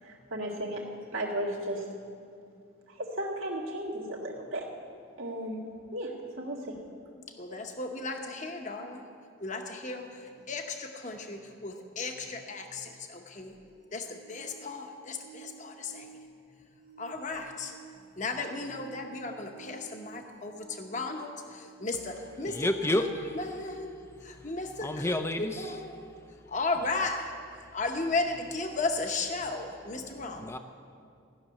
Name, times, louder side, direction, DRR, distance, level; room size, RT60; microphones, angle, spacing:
voice 1, 0.0-0.8 1.1-1.9 2.9-4.7 5.2-5.6 5.9-6.8, right 1 dB, 75° right, 2.0 m, -35 dB
voice 2, 7.4-9.0 9.4-13.5 13.9-16.1 17.0-17.7 18.1-26.1 26.5-27.4 27.7-30.5, left 3 dB, 35° left, 0.9 m, -35 dB
sound 1, 13.5-23.2 25.5-25.6, right 5 dB, 55° right, 1.4 m, -53 dB
voice 3, 22.5-23.4 24.8-25.7 30.4-30.6, left 1 dB, 10° left, 0.5 m, -30 dB
15.0 x 6.7 x 9.8 m
head